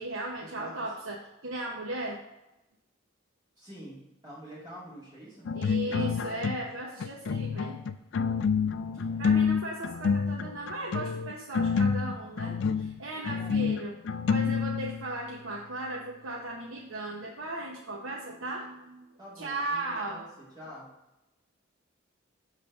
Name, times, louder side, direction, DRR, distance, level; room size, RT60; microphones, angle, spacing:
voice 1, 0.0-2.2 5.5-7.8 9.2-14.0 14.3-20.2, right 2 dB, 90° right, -2 dB, 0.8 m, -37 dB
voice 2, 3.6-5.5 5.8-6.0 8.9-9.6 13.1-13.6 14.4-14.5 19.2-20.3 20.5-20.9, equal, 20° right, -8 dB, 2.3 m, -47 dB
sound 1, 5.5-6.8 7.0-15.1, left 6 dB, 60° left, 0.3 m, -28 dB
7.0 x 3.3 x 5.0 m, 0.96 s
head